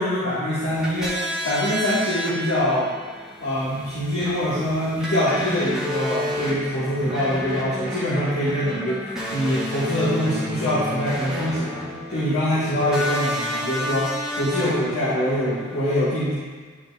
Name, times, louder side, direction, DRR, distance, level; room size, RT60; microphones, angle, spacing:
voice 1, 0.0-2.9 3.4-11.7 12.1-16.3, equal, 80° left, -10 dB, 1.8 m, -24 dB
sound 1, 0.6-15.8, left 1 dB, 5° right, 1.3 m, -31 dB
11.5 x 5.1 x 2.4 m, 1.5 s
head